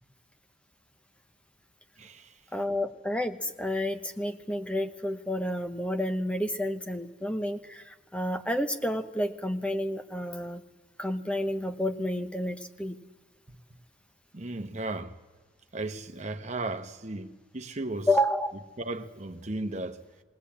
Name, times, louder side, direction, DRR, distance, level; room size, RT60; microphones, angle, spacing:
voice 1, 2.0-2.4 14.3-15.2 15.7-18.1 18.8-20.0, right 2 dB, 35° right, 1.1 m, -35 dB
voice 2, 2.5-7.8 8.1-10.6 11.0-13.0 18.1-18.5, left 1 dB, 5° left, 0.9 m, -30 dB
19.5 x 18.0 x 8.6 m
head